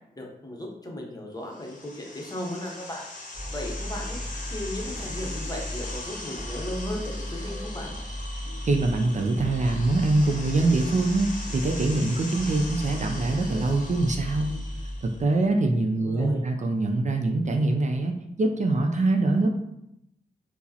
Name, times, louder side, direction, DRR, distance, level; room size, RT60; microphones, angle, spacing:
voice 1, 0.1-3.1 3.5-4.2 4.5-7.9 16.0-16.4, left 1 dB, 25° left, -1 dB, 0.8 m, -36 dB
sound 1, 1.5-15.2, left 2 dB, 50° left, 0.8 m, -41 dB
sound 2, 3.3-15.5, equal, 25° right, 1.5 m, -36 dB
voice 2, 8.7-14.5 15.0-19.6, right 2 dB, 45° right, 3 dB, 0.4 m, -24 dB
4.5 x 2.0 x 2.8 m, 0.82 s
cardioid pair, 55°, 17 cm